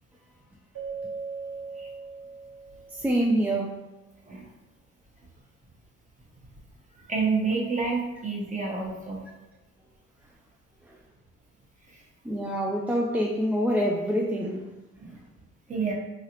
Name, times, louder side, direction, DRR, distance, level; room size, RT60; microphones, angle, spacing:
Keyboard (musical), 0.8-3.2, right 4 dB, 50° right, 1.3 m, -38 dB
voice 1, 2.9-3.8 10.2-10.3 10.8-11.0 12.2-14.8, equal, 5° right, -2 dB, 0.3 m, -26 dB
voice 2, 7.1-9.2 15.0-15.2 15.7-15.9, right 4 dB, 25° right, -3 dB, 1.1 m, -28 dB
3.8 x 3.2 x 2.9 m, 1.1 s
cardioid pair, 90°, 30 cm